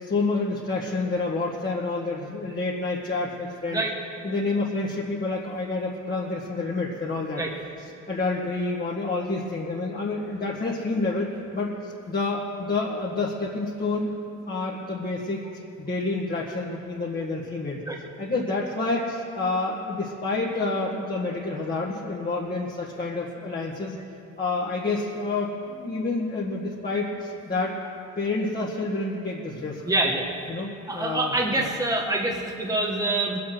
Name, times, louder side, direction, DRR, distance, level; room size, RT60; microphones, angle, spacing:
voice 1, 0.0-3.8 4.2-7.4 7.8-14.1 14.5-15.4 15.8-24.0 24.4-27.8 28.2-29.8 30.5-31.7, left 3 dB, 30° left, -5 dB, 1.9 m, -28 dB
voice 2, 29.9-30.2 30.9-33.4, right 2 dB, 10° right, 0 dB, 1.4 m, -25 dB
21.0 x 7.7 x 6.2 m, 2.8 s
cardioid pair, 90°, 30 cm